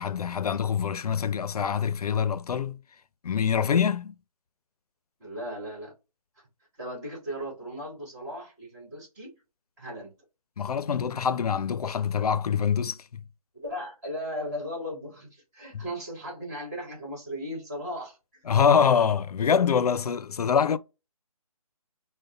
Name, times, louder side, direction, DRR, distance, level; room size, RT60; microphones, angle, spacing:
voice 1, 0.0-2.8 3.2-4.1 10.6-13.2 15.7-15.8 18.5-20.8, left 7 dB, 85° left, 0.4 m, -25 dB
voice 2, 5.2-5.9 6.8-9.3 9.8-10.1 13.6-18.4, equal, 25° right, 1.7 m, -37 dB
3.9 x 2.1 x 3.8 m
hypercardioid pair, 165°, 19 cm